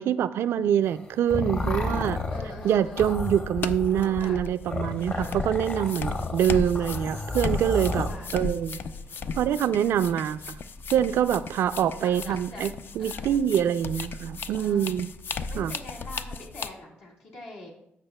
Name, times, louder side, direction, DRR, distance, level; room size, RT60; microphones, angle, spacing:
voice 1, 0.0-2.2 2.6-8.8 9.3-10.4 10.9-15.1 15.6-15.7, right 9 dB, 75° right, 13 dB, 0.3 m, -25 dB
sound 1, 0.9-8.1, left 2 dB, 40° left, 1.3 m, -32 dB
sound 2, 1.9-16.7, left 4 dB, 60° left, 0.4 m, -36 dB
voice 2, 2.3-3.2 4.2-4.5 8.0-8.4 9.9-10.2 12.0-12.6 13.0-13.4 14.6-14.9 15.5-17.7, left 2 dB, 75° left, -2 dB, 1.7 m, -44 dB
13.0 x 5.4 x 2.2 m, 0.79 s
supercardioid pair, 60°, 4 cm